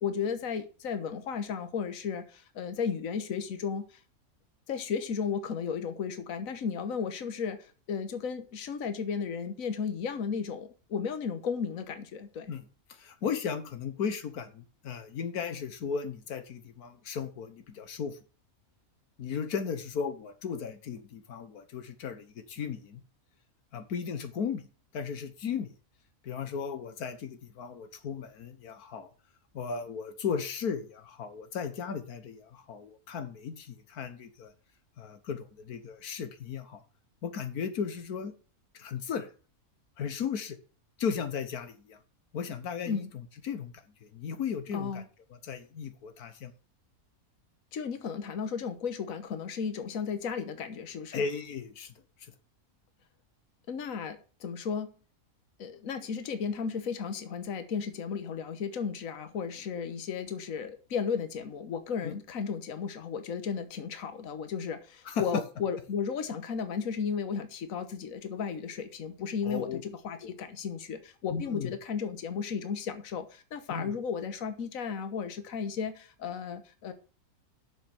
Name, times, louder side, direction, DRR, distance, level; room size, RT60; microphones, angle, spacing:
voice 1, 0.0-4.0 4.7-12.5 42.9-43.1 44.7-45.0 47.7-51.2 53.7-54.9 55.6-76.9, left 6 dB, 65° left, 1.5 m, -34 dB
voice 2, 12.9-18.2 19.2-23.0 23.7-24.6 24.9-25.7 26.2-29.1 29.5-34.5 35.0-36.8 37.2-38.3 38.7-39.3 40.0-40.6 41.0-42.0 42.3-43.0 43.4-43.7 44.0-45.0 45.4-46.5 51.1-51.9 62.0-62.1 65.0-65.2 69.4-69.8 70.2-70.3 71.3-71.7 73.7-73.9, left 6 dB, 90° left, 1.6 m, -36 dB
7.3 x 6.6 x 7.9 m
omnidirectional pair, 1.5 m